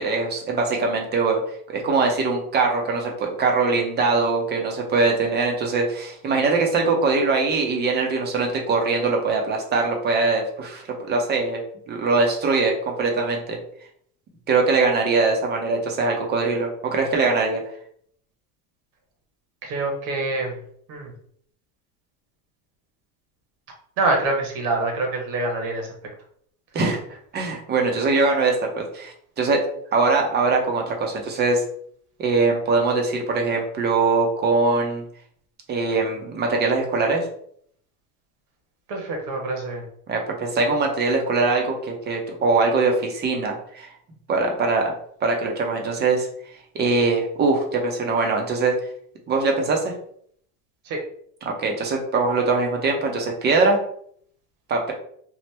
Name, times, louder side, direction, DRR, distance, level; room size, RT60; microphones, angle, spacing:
voice 1, 0.0-1.4 1.7-11.6 11.9-13.6 14.5-17.6 26.7-27.0 27.3-29.6 29.9-31.6 32.2-35.0 35.7-37.2 40.1-43.9 44.3-44.9 45.2-46.3 46.7-48.7 49.3-49.9 51.4-53.8 54.7-54.9, right 3 dB, 25° right, 2 dB, 0.6 m, -22 dB
voice 2, 19.6-20.5 20.9-21.1 24.0-25.9 38.9-39.8 50.9-51.0, right 2 dB, 60° right, 2 dB, 1.1 m, -25 dB
2.9 x 2.0 x 3.3 m, 0.64 s
supercardioid pair, 135°, 40 cm